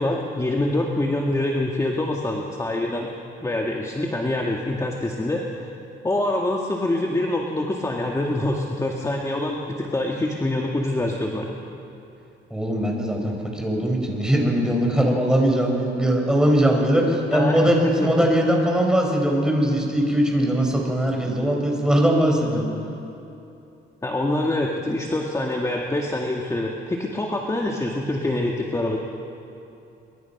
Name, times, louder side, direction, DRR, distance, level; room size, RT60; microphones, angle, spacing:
voice 1, 0.0-3.1 3.4-5.7 6.0-11.6 17.3-17.6 18.0-18.1 24.0-29.0, left 1 dB, 15° left, 0 dB, 2.0 m, -25 dB
voice 2, 12.5-22.7, right 1 dB, 5° right, 0 dB, 5.7 m, -20 dB
25.0 x 23.5 x 6.0 m, 2.8 s
cardioid pair, 90°, 20 cm